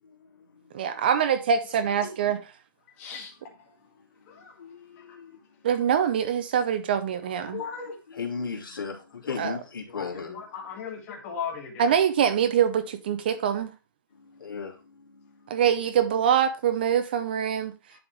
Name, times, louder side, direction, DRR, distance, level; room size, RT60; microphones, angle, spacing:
voice 1, 0.7-2.4 5.6-7.6 9.4-9.6 11.8-13.7 15.5-17.7, right 8 dB, 25° right, 0.6 m, -24 dB
voice 2, 4.3-5.4 7.6-10.4 14.2-15.5, left 5 dB, 70° left, 2.9 m, -37 dB
voice 3, 7.5-7.9 9.9-10.0 10.5-11.7, left 7 dB, 15° left, 1.5 m, -35 dB
11.0 x 3.6 x 4.5 m
hypercardioid pair, 170°, 12 cm